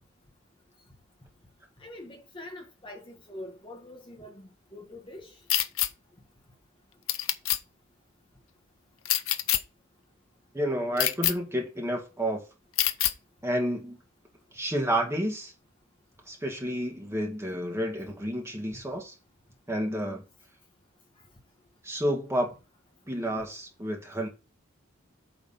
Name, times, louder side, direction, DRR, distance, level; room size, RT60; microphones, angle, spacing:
voice 1, 1.8-5.3, left 1 dB, 25° left, 1.6 m, -44 dB
sound 1, 5.5-5.9 7.1-7.6 9.0-9.6 11.0-11.3 12.8-13.1, left 13 dB, 75° left, 0.7 m, -25 dB
voice 2, 10.5-12.4 13.4-14.0 14.5-15.5 16.3-19.2 19.7-20.2 21.8-22.5 23.1-24.3, equal, 15° right, 1.9 m, -30 dB
8.9 x 3.9 x 5.7 m
head